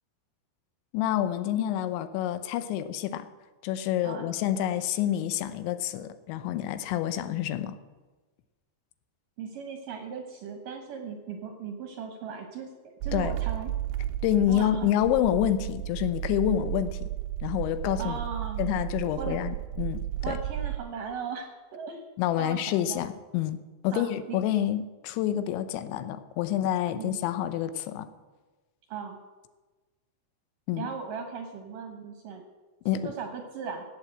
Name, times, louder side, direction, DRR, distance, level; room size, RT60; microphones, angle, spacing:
voice 1, 0.9-3.3 3.6-7.8 13.1-13.3 14.2-17.1 17.4-18.2 18.6-20.0 20.3-20.4 22.2-23.6 23.8-28.1 30.7-30.9 32.9-33.1, left 11 dB, 85° left, 12 dB, 3.1 m, -28 dB
voice 2, 9.4-13.7 14.5-14.9 18.0-18.6 19.2-19.4 20.2-22.0 22.4-23.1 23.9-24.4 27.0-27.2 28.9-29.2 30.8-32.4 33.0-33.8, right 6 dB, 65° right, 4 dB, 2.3 m, -38 dB
sound 1, 13.0-20.8, right 13 dB, 80° right, 2.8 m, -33 dB
16.5 x 8.5 x 7.7 m, 1.3 s
omnidirectional pair, 5.2 m